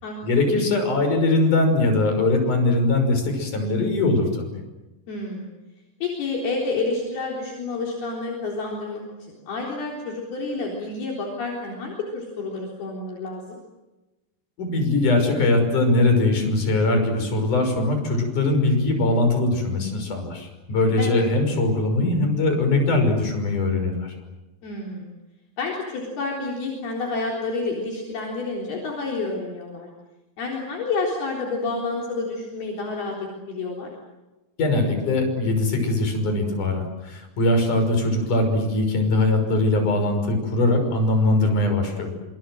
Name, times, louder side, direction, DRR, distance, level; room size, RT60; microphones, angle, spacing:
voice 1, 0.2-4.5 14.6-24.1 34.6-42.1, left 2 dB, 45° left, 5 dB, 7.3 m, -21 dB
voice 2, 5.1-5.5 6.0-9.0 9.3-13.6 21.0-21.2 24.6-25.1 25.6-29.9 30.4-33.9, left 3 dB, 60° left, -2 dB, 5.7 m, -29 dB
27.0 x 27.0 x 7.8 m, 1.1 s
omnidirectional pair, 5.0 m